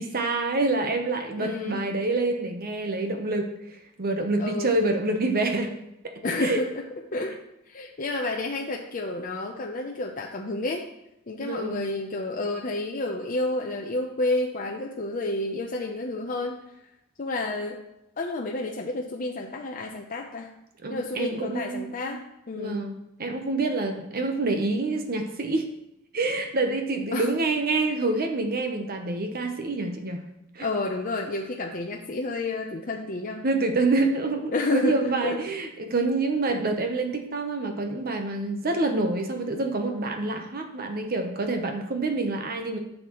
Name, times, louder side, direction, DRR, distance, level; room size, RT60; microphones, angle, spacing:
voice 1, 0.0-5.7 6.0-6.6 11.4-11.9 20.8-22.2 22.6-25.7 26.1-30.2 30.5-30.7 33.4-42.8, right 2 dB, 45° right, 5 dB, 0.9 m, -27 dB
voice 2, 1.4-1.9 4.4-4.7 6.2-6.8 7.1-7.4 7.7-10.9 11.3-16.5 17.2-17.8 18.2-20.5 20.9-22.8 27.1-27.3 30.6-33.4 34.5-35.4, left 2 dB, 40° left, 0 dB, 0.7 m, -30 dB
11.5 x 6.5 x 3.0 m, 0.87 s
head